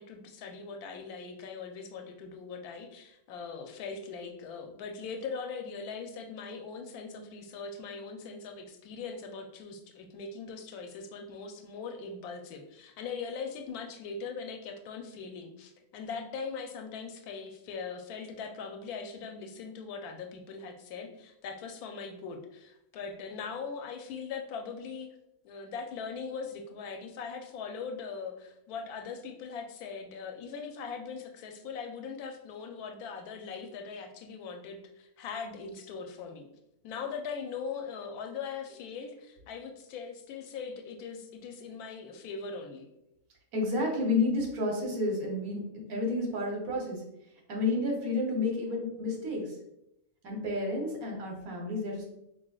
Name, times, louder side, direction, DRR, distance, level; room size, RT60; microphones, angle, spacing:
voice 1, 0.0-25.1 25.4-36.5 36.8-42.9, left 5 dB, 85° left, 5 dB, 1.1 m, -40 dB
voice 2, 43.5-47.0 47.5-49.5 50.2-52.0, left 2 dB, 75° right, 0 dB, 1.4 m, -30 dB
5.5 x 2.4 x 2.3 m, 0.84 s
omnidirectional pair, 1.5 m